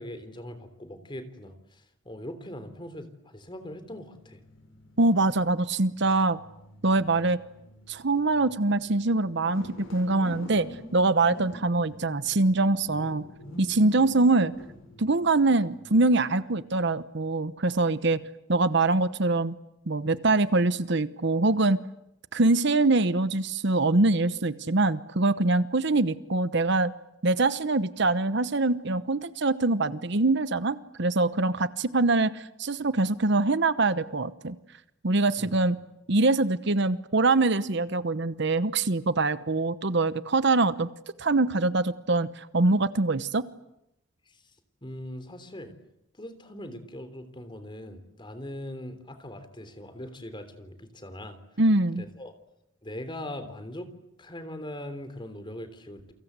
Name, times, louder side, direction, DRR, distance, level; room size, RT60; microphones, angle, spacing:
voice 1, 0.0-4.4 35.4-35.6 44.3-44.4 44.8-45.7 46.2-51.4 52.0-52.3 52.8-53.9 54.2-56.1, left 1 dB, 25° left, 10 dB, 3.4 m, -41 dB
sound 1, 3.5-16.9, left 1 dB, 75° left, 7.1 m, -47 dB
voice 2, 5.0-6.4 6.8-7.4 7.9-10.7 10.9-13.2 13.6-14.5 15.0-18.2 18.5-19.6 19.9-21.8 22.3-26.9 27.2-34.5 35.0-35.8 36.1-40.9 41.2-43.4 51.6-52.0, right 2 dB, 60° right, 14 dB, 1.0 m, -24 dB
29.5 x 24.0 x 8.2 m, 0.83 s
head